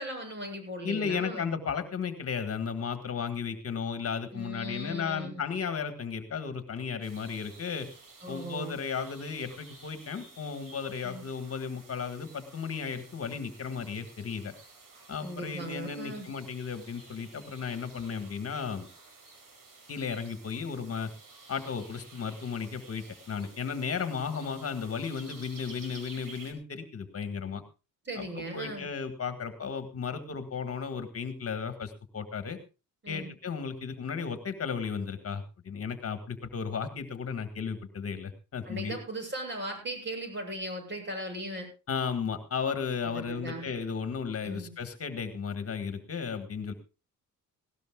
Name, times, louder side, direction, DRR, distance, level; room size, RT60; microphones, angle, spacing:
voice 1, 0.0-1.5 4.3-5.4 8.2-8.8 11.0-11.2 15.2-16.3 28.0-28.9 33.0-33.3 38.6-41.7 43.1-43.7 44.4-44.7, right 1 dB, 35° right, 3 dB, 7.8 m, -38 dB
voice 2, 0.8-7.9 8.3-14.5 15.1-18.9 19.9-21.1 21.5-27.6 28.2-32.6 33.1-39.0 41.9-46.7, left 6 dB, 45° left, 9 dB, 1.7 m, -34 dB
sound 1, 7.0-26.5, right 3 dB, 75° right, 4.6 m, -53 dB
19.0 x 17.5 x 2.4 m, 0.30 s
cardioid pair, 140°, 33 cm